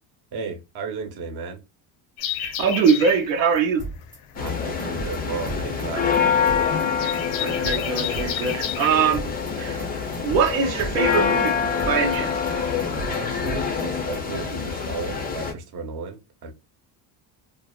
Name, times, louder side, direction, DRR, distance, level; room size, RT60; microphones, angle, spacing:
voice 1, 0.3-1.6 4.3-6.4 13.0-16.5, right 4 dB, 50° right, 0.8 m, -34 dB
sound 1, 2.2-10.4, left 11 dB, 75° left, 0.6 m, -33 dB
voice 2, 2.4-3.8 7.0-9.2 9.6-9.8 10.2-11.6 11.8-12.3, right 6 dB, 80° right, 0.7 m, -22 dB
sound 2, 3.8-4.2 4.5-6.2 6.5-6.8 7.1-8.8 9.1-9.5 9.8-11.5 11.8-12.2 12.5-14.2, right 2 dB, 15° right, 0.7 m, -35 dB
sound 3, 4.4-15.5, left 6 dB, 20° left, 0.3 m, -26 dB
2.6 x 2.1 x 2.3 m
cardioid pair, 120°, 48 cm